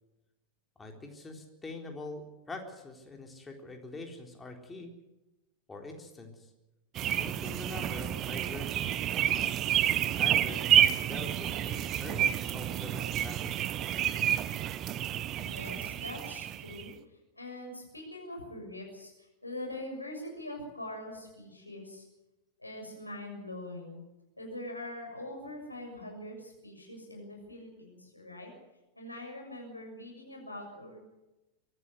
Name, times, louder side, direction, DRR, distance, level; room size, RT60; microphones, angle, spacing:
voice 1, 0.8-4.9 5.7-6.5 7.1-9.4 9.9-13.7, left 2 dB, 15° left, 2 dB, 3.9 m, -44 dB
sound 1, 6.9-16.9, right 11 dB, 35° right, 0.9 m, -29 dB
voice 2, 15.3-22.1 22.6-24.0 24.4-28.5 28.9-31.0, left 1 dB, 85° left, 2 dB, 6.6 m, -43 dB
23.5 x 13.0 x 9.5 m, 1.0 s
figure-of-eight pair, 90°, 0 cm